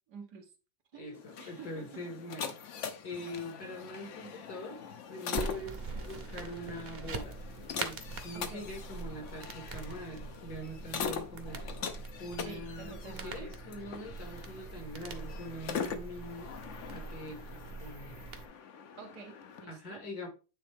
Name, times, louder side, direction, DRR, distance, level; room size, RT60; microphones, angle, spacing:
voice 1, 0.1-0.5 0.9-1.9 8.3-8.7 12.4-13.5 19.0-20.0, right 5 dB, 85° right, 1.8 m, -49 dB
voice 2, 0.9-2.6 3.0-4.8 5.1-7.4 7.7-11.6 12.2-16.5 16.9-18.2 19.6-20.3, left 1 dB, 70° left, 2.5 m, -43 dB
sound 1, 1.1-19.6, left 6 dB, 55° left, 1.0 m, -42 dB
sound 2, 5.3-18.5, right 4 dB, 45° right, 1.1 m, -43 dB
9.2 x 4.0 x 3.4 m
omnidirectional pair, 1.7 m